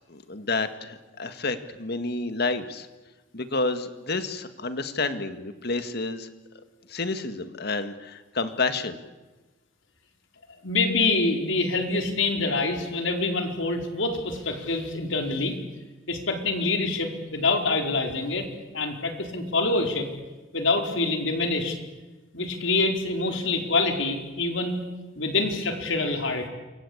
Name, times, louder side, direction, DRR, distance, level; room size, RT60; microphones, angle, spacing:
voice 1, 0.1-2.9 3.3-6.3 6.9-9.0, left 3 dB, 55° left, 10 dB, 2.0 m, -29 dB
voice 2, 10.6-15.5 16.1-18.5 18.7-20.1 20.5-21.8 22.3-24.8 25.2-26.5, left 3 dB, 75° left, 4 dB, 4.7 m, -26 dB
28.5 x 23.5 x 8.8 m, 1.2 s
head